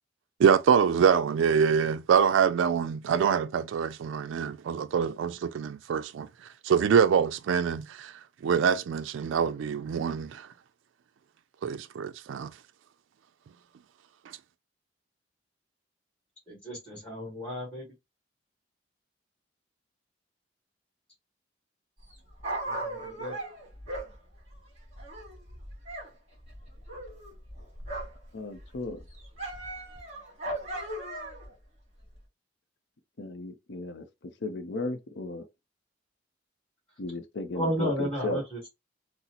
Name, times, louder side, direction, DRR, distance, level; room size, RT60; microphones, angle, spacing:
voice 1, 0.4-6.3 6.7-8.1 8.4-10.4 11.6-12.5, right 7 dB, 85° right, 0.3 m, -25 dB
voice 2, 16.5-17.8 22.6-23.3 37.5-38.6, equal, 5° left, 1.4 m, -33 dB
Dog, 22.0-26.1 26.3-28.3 28.6-31.5 32.1-32.2, right 1 dB, 35° right, 1.6 m, -38 dB
voice 3, 28.3-29.0 33.2-35.5 37.0-38.4, left 2 dB, 65° left, 0.6 m, -35 dB
3.9 x 2.0 x 2.8 m
head